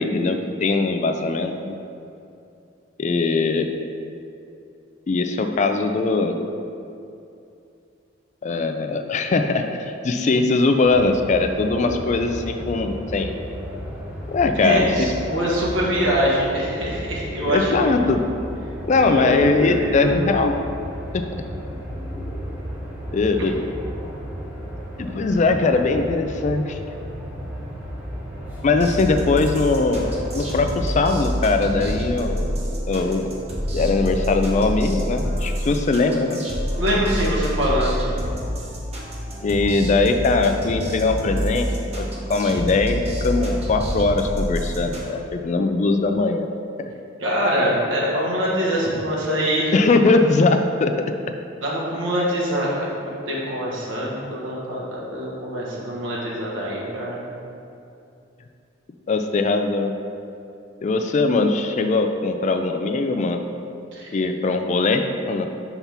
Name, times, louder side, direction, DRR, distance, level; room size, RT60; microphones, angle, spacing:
voice 1, 0.0-1.8 3.0-3.7 5.1-6.4 8.4-13.4 14.3-15.1 17.5-18.2 18.9-20.5 21.1-21.2 23.1-23.5 25.0-26.8 28.6-32.5 32.9-33.3 33.7-36.4 39.4-41.7 42.0-46.5 46.8-46.9 49.7-51.1 59.1-59.9 60.8-63.4 64.1-65.5, left 3 dB, 40° left, 6 dB, 0.3 m, -21 dB
sound 1, 10.8-30.7, equal, 10° right, 0.9 m, -34 dB
voice 2, 14.6-17.9 19.0-20.2 36.8-38.2 47.2-49.7 51.6-57.2 63.9-64.2, equal, 80° right, -5 dB, 1.5 m, -24 dB
sound 2, 28.7-45.1, equal, 35° right, 1.0 m, -27 dB
5.7 x 3.5 x 5.7 m, 2.6 s
head